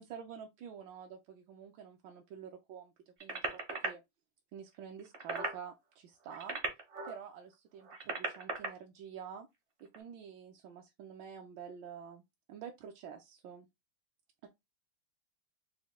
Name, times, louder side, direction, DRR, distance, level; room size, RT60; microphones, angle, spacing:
voice 1, 0.0-2.9 3.2-4.0 4.5-6.6 7.0-9.5 9.8-12.2 12.5-13.7 14.4-14.5, right 7 dB, 75° right, 1.1 m, -48 dB
sound 1, 3.2-3.9 5.0-5.6 6.2-7.2 7.8-8.7 9.9-10.0, right 3 dB, 45° right, 0.7 m, -37 dB
5.2 x 2.2 x 3.4 m
omnidirectional pair, 2.4 m